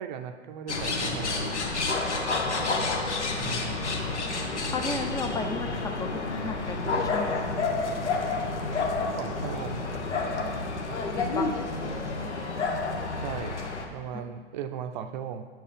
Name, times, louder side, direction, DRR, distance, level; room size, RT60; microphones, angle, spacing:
voice 1, 0.0-1.5 3.4-3.8 9.2-9.8 13.2-13.6 13.9-15.5, right 8 dB, 45° right, 8 dB, 0.5 m, -37 dB
sound 1, 0.7-13.8, left 3 dB, 85° left, 1.1 m, -29 dB
voice 2, 4.7-6.1 6.4-7.5 11.1-11.6, left 3 dB, 10° left, 5 dB, 0.5 m, -35 dB
9.3 x 4.6 x 5.1 m, 1.6 s
hypercardioid pair, 115°, 34 cm